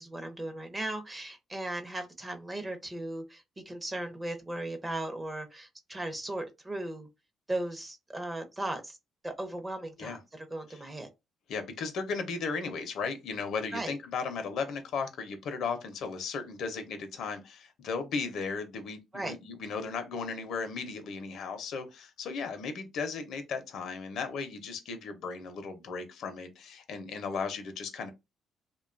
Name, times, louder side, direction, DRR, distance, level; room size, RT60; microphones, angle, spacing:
voice 1, 0.0-7.1 7.5-9.0 9.2-11.1 13.7-13.9 19.1-19.3, right 1 dB, 20° right, 0.6 m, -37 dB
voice 2, 11.5-28.1, left 5 dB, 75° left, 0.5 m, -36 dB
2.6 x 2.2 x 2.4 m
cardioid pair, 90°, 0 cm